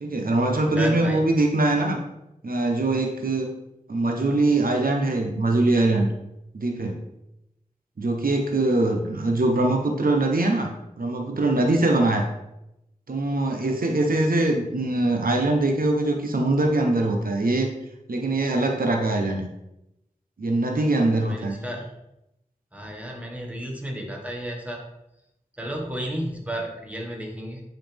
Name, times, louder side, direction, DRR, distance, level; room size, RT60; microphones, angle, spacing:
voice 1, 0.0-2.0 2.4-3.5 3.9-6.1 6.5-7.0 8.0-12.3 13.1-17.7 18.1-19.5 20.4-21.6, right 2 dB, 90° right, 3 dB, 0.9 m, -22 dB
voice 2, 0.6-1.2 21.2-21.9 22.7-24.8 25.6-27.6, right 1 dB, 10° right, 0 dB, 1.8 m, -32 dB
9.2 x 5.5 x 3.5 m, 0.87 s
wide cardioid pair, 55°, 14 cm